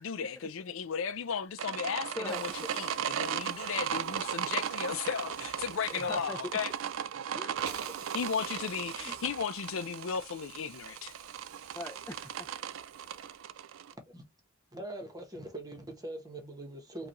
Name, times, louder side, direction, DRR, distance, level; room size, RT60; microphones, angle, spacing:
voice 1, 0.0-6.7 8.1-11.1, left 6 dB, 65° left, 0.5 m, -35 dB
sound 1, 1.6-13.9, right 9 dB, 65° right, 0.3 m, -37 dB
voice 2, 2.1-2.5 5.9-6.4 7.3-7.7 9.0-9.2 11.7-12.5, left 1 dB, 10° left, 0.4 m, -42 dB
Hiss, 2.3-13.5, right 8 dB, 85° right, 0.8 m, -51 dB
voice 3, 13.9-14.3 14.7-17.1, right 1 dB, 20° right, 1.1 m, -42 dB
4.8 x 2.4 x 3.0 m
head